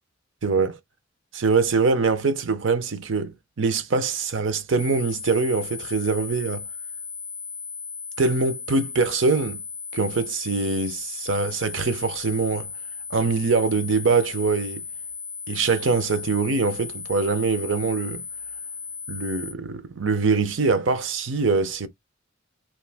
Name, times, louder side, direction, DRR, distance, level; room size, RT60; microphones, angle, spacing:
voice 1, 0.4-0.8 1.3-6.6 8.2-9.6 9.9-12.7 13.1-14.8 15.5-18.2 19.1-21.9, right 4 dB, 70° right, 0.6 m, -23 dB
sound 1, 4.8-19.5, left 6 dB, 30° left, 0.5 m, -36 dB
3.0 x 2.5 x 3.4 m
head